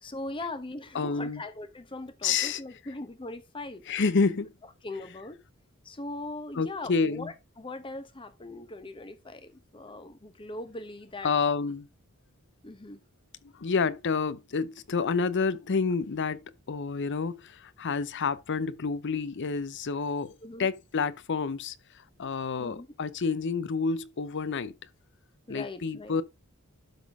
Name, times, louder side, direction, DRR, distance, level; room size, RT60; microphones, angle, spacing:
voice 1, 0.0-3.8 4.8-5.4 5.8-11.3 12.6-13.0 20.4-20.7 22.6-22.9 25.5-26.2, left 2 dB, 25° left, 1.0 m, -40 dB
voice 2, 0.9-1.4 2.2-2.6 3.9-4.5 6.5-7.3 11.2-11.9 13.5-21.7 22.2-24.7 25.5-26.2, left 5 dB, 55° left, 0.7 m, -29 dB
12.0 x 4.1 x 3.6 m
head